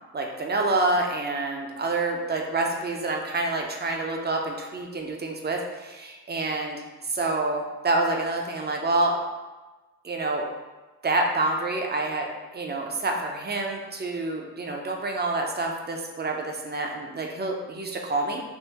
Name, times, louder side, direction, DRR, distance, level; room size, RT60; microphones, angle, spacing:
voice 1, 0.1-9.1 10.0-10.4 11.0-18.4, right 2 dB, 30° right, 1 dB, 0.5 m, -27 dB
3.5 x 2.4 x 2.8 m, 1.2 s
cardioid pair, 95°, 35 cm